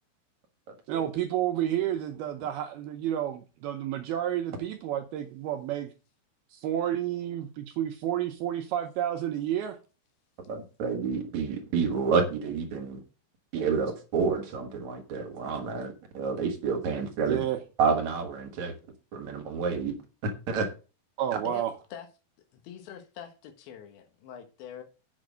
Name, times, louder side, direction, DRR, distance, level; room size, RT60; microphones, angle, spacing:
voice 1, 0.9-5.9 6.5-9.8 17.3-17.6 21.2-21.7, right 11 dB, 75° right, 2.5 m, -30 dB
voice 2, 10.5-13.0 13.5-17.5 17.8-18.7 19.1-20.0 20.2-20.7, right 5 dB, 55° right, 2.2 m, -29 dB
voice 3, 22.6-24.8, left 8 dB, 80° left, 3.7 m, -43 dB
8.8 x 6.3 x 6.3 m
omnidirectional pair, 5.1 m